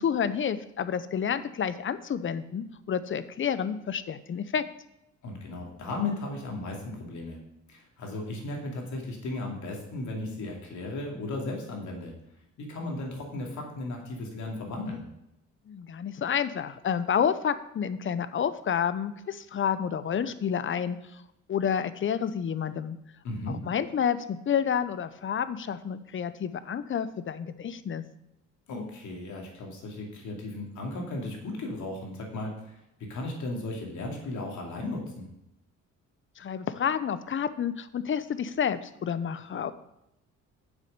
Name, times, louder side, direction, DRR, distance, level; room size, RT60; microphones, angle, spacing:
voice 1, 0.0-4.7 15.7-21.0 21.5-23.0 23.5-28.0 36.4-39.7, left 8 dB, 40° left, 14 dB, 0.7 m, -29 dB
voice 2, 5.2-7.4 7.7-12.1 12.6-15.0 23.2-23.6 28.7-35.3, left 2 dB, 75° left, 0 dB, 2.6 m, -35 dB
7.5 x 6.2 x 6.7 m, 0.86 s
cardioid pair, 90°, 30 cm